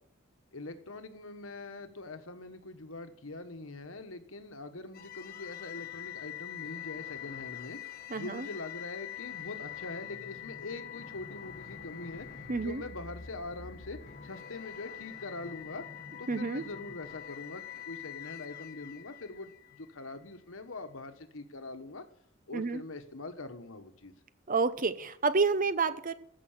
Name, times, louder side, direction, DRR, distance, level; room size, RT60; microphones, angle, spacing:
voice 1, 0.5-12.3 12.6-15.8 16.2-22.0 22.5-24.1, left 2 dB, 85° left, 8 dB, 1.4 m, -43 dB
sound 1, 4.9-20.1, left 10 dB, 50° left, 1.1 m, -44 dB
voice 2, 8.1-8.5 12.5-12.8 16.3-16.6 22.5-22.8 24.5-26.1, right 4 dB, 40° right, 13 dB, 0.8 m, -29 dB
14.5 x 6.1 x 7.4 m, 0.68 s
head